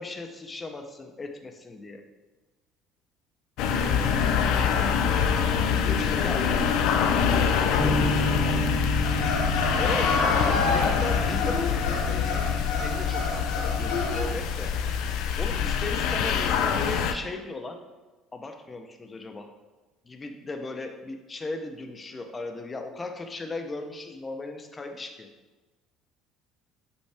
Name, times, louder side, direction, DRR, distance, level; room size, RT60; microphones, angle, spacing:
voice 1, 0.0-2.0 6.2-6.4 9.8-14.7 15.4-17.8 18.3-19.5 20.0-25.3, left 3 dB, 25° left, 5 dB, 0.7 m, -37 dB
sound 1, 3.6-17.1, left 7 dB, 75° left, 0.5 m, -25 dB
voice 2, 3.6-6.8 7.2-8.9, left 3 dB, 55° left, 1 dB, 1.3 m, -39 dB
Bass guitar, 7.8-14.1, right 4 dB, 20° right, 0.5 m, -35 dB
sound 2, 9.0-14.2, left 3 dB, 90° left, 0.9 m, -29 dB
5.5 x 5.4 x 3.4 m, 1.2 s
cardioid pair, 110°, 0 cm